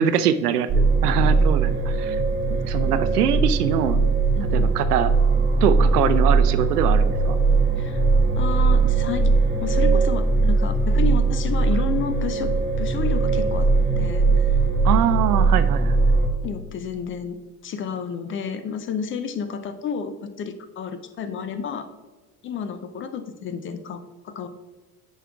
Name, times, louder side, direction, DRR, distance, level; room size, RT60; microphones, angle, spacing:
voice 1, 0.0-2.2 2.6-4.0 4.5-5.1 5.6-7.4 11.7-11.8 14.8-16.0, right 9 dB, 75° right, 12 dB, 0.6 m, -23 dB
sound 1, 0.7-16.3, right 3 dB, 25° right, 1.7 m, -20 dB
voice 2, 4.4-4.7 7.8-8.1 8.4-9.3 9.6-12.5 12.8-13.7 14.0-14.6 16.4-17.4 17.6-21.9 22.4-24.5, left 6 dB, 25° left, 10 dB, 0.5 m, -31 dB
9.9 x 6.4 x 2.3 m, 1.3 s
figure-of-eight pair, 65°, 47 cm